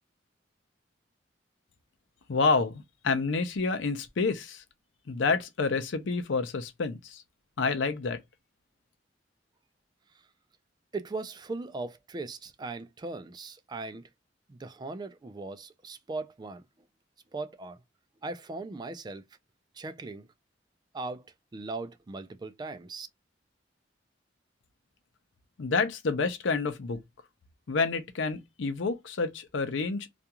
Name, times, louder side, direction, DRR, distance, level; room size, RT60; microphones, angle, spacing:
voice 1, 2.3-4.6 5.1-7.2 7.6-8.2 25.6-27.0 27.7-30.1, left 4 dB, 75° left, 0.5 m, -28 dB
voice 2, 10.9-14.1 14.5-16.6 17.3-17.8 18.2-19.2 19.7-20.3 20.9-23.1, right 3 dB, 25° right, 0.3 m, -39 dB
2.4 x 2.3 x 2.8 m
head